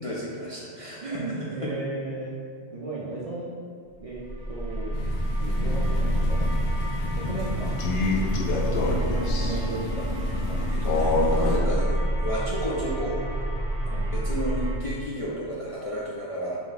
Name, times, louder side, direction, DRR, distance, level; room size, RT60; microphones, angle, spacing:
voice 1, 0.0-1.8 8.8-9.0 10.7-13.2 13.9-16.6, equal, 45° left, -6 dB, 0.4 m, -32 dB
voice 2, 1.0-2.3 2.7-3.5 4.0-5.0 5.4-6.5 7.1-7.8 9.4-10.6 11.7-11.9 13.9-14.1, right 2 dB, 50° right, -6 dB, 0.4 m, -35 dB
sound 1, 4.1-14.7, right 1 dB, 90° left, 1.8 m, -28 dB
Crow, 4.9-11.6, left 2 dB, 70° left, 0.8 m, -29 dB
3.3 x 3.0 x 3.9 m, 2.3 s
omnidirectional pair, 1.1 m